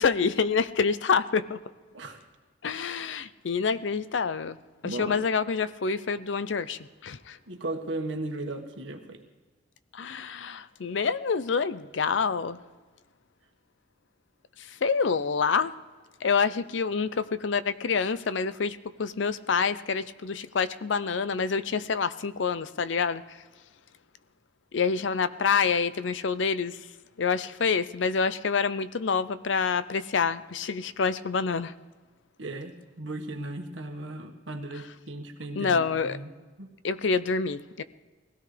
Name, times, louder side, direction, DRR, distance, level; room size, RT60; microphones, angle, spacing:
voice 1, 0.0-1.6 2.6-4.6 4.8-7.4 9.9-12.6 14.6-15.7 16.2-23.4 24.7-26.9 27.2-31.7 35.6-36.2 36.8-37.8, left 5 dB, 70° left, 14 dB, 0.6 m, -27 dB
voice 2, 1.9-2.2 4.8-5.2 7.5-9.2 32.4-36.3 36.6-36.7, right 2 dB, 80° right, 3 dB, 1.6 m, -36 dB
21.5 x 16.5 x 3.3 m, 1.4 s
head